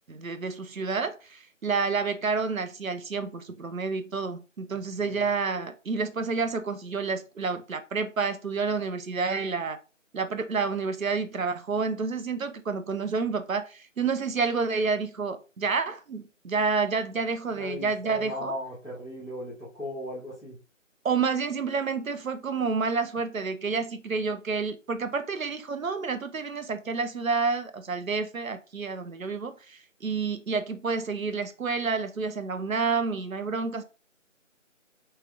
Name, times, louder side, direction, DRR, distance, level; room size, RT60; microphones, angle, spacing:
voice 1, 0.1-9.8 10.1-18.5 21.0-33.8, right 4 dB, 90° right, 0.7 m, -29 dB
voice 2, 4.7-5.3 17.6-20.6, left 1 dB, ahead, 0.7 m, -38 dB
3.2 x 3.1 x 2.3 m
figure-of-eight pair, 165°, 39 cm